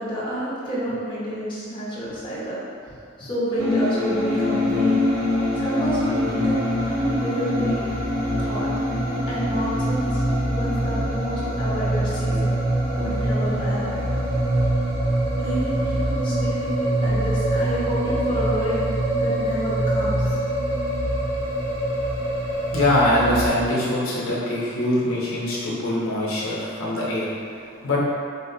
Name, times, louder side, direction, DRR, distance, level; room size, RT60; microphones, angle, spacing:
voice 1, 0.0-5.0 5.5-7.8 8.4-8.7 9.3-10.2 10.5-12.6 13.0-14.0 15.3-20.4, right 1 dB, 25° left, -9 dB, 0.8 m, -29 dB
sound 1, 3.6-23.5, equal, 65° right, 0.8 m, -24 dB
voice 2, 22.7-28.0, left 1 dB, 75° left, -6 dB, 0.7 m, -23 dB
4.0 x 2.1 x 2.7 m, 2.4 s
head